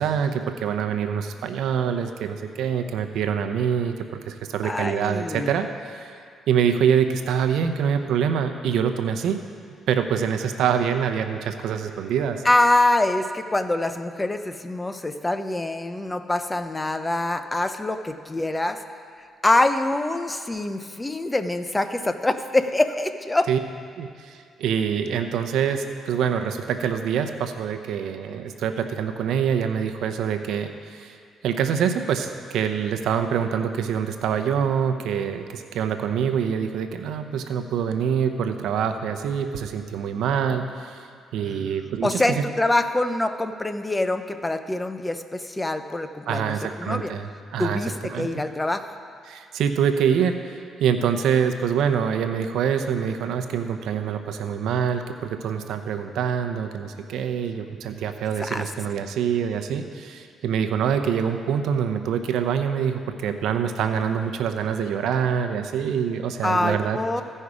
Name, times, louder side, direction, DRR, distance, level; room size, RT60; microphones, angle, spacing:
voice 1, 0.0-3.9 4.3-6.1 6.5-9.4 9.9-12.4 23.5-23.6 24.0-31.2 31.4-41.0 41.3-42.4 46.3-47.8 48.1-48.4 49.3-67.2, right 7 dB, 80° right, 7 dB, 0.7 m, -25 dB
voice 2, 4.6-5.5 12.4-18.8 19.4-23.5 42.0-47.1 47.6-48.9 58.4-58.7 66.4-67.2, left 2 dB, 15° left, 9 dB, 0.6 m, -24 dB
15.0 x 5.4 x 4.9 m, 2.3 s
cardioid pair, 90°, 0 cm